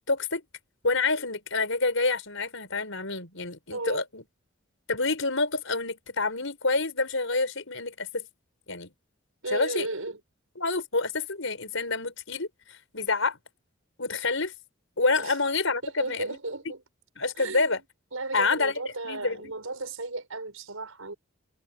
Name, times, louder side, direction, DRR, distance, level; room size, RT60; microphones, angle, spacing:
voice 1, 0.1-0.4 0.8-4.2 4.9-8.2 8.7-8.9 9.5-9.9 10.6-12.5 12.9-13.4 14.0-14.5 15.0-16.4 17.2-17.8 18.3-19.5, left 3 dB, 70° left, 5.0 m, -27 dB
voice 2, 3.7-4.0 9.4-10.2 15.2-15.4 15.8-16.8 17.3-17.8 18.1-21.1, right 2 dB, 85° right, 6.0 m, -35 dB
head